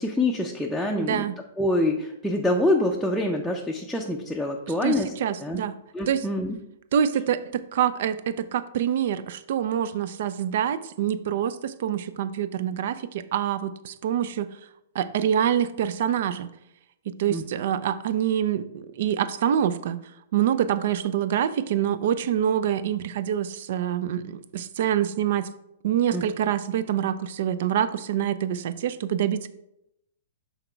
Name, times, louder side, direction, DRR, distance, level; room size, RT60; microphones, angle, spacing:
voice 1, 0.0-1.3 1.6-5.1 5.4-5.6 5.9-6.6 17.3-17.4 26.1-26.3, left 1 dB, ahead, -2 dB, 0.5 m, -25 dB
voice 2, 1.0-1.3 4.8-5.7 6.1-6.3 6.9-14.5 14.9-16.5 17.1-20.0 20.3-25.5 25.8-29.5, right 9 dB, 60° right, 14 dB, 0.4 m, -26 dB
5.8 x 4.0 x 4.5 m, 0.83 s
hypercardioid pair, 125°, 0 cm